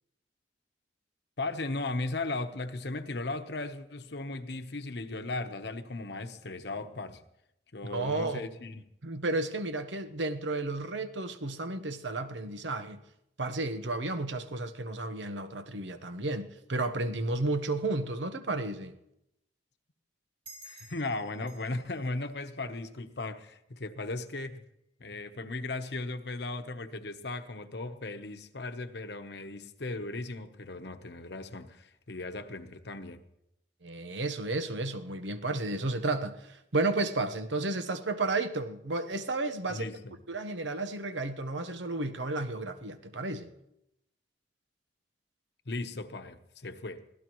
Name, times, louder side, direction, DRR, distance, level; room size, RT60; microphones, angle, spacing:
voice 1, 1.4-7.2 7.7-8.8 20.6-24.6 25.0-33.2 39.7-40.1 45.7-47.0, left 2 dB, 65° left, 1.0 m, -37 dB
voice 2, 7.9-8.5 9.0-13.0 13.4-19.0 33.8-39.9 40.3-43.5, right 2 dB, 85° right, 1.1 m, -32 dB
sound 1, 20.4-23.5, right 2 dB, 30° right, 2.0 m, -54 dB
24.5 x 16.0 x 3.1 m
head